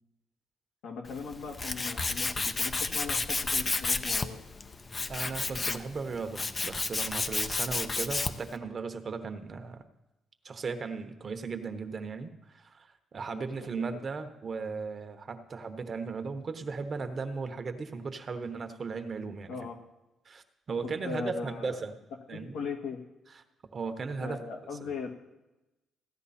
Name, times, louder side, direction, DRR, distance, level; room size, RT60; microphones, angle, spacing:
voice 1, 0.8-4.4 13.3-14.0 19.5-19.8 20.8-21.8 22.3-23.0 24.2-25.1, left 4 dB, 85° left, 1 dB, 1.8 m, -39 dB
Tools, 1.1-8.5, left 3 dB, 30° left, 0.6 m, -32 dB
voice 2, 5.1-9.8 10.4-12.9 13.1-19.6 20.2-21.9 22.3-22.6 23.7-24.4 24.8-24.9, right 4 dB, 45° right, 8 dB, 1.1 m, -36 dB
15.5 x 9.9 x 4.3 m, 0.99 s
cardioid pair, 90°, 0 cm